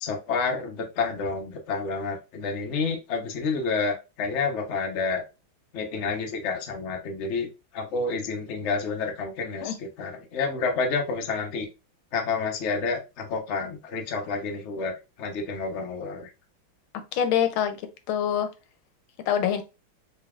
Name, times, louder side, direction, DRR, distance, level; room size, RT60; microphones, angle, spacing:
voice 1, 0.0-5.2 5.7-11.7 12.1-16.3, left 4 dB, 55° left, 0.8 m, -29 dB
voice 2, 17.1-17.8 18.1-18.5 19.3-19.6, left 9 dB, 85° left, 1.4 m, -24 dB
3.9 x 3.3 x 2.3 m
omnidirectional pair, 2.2 m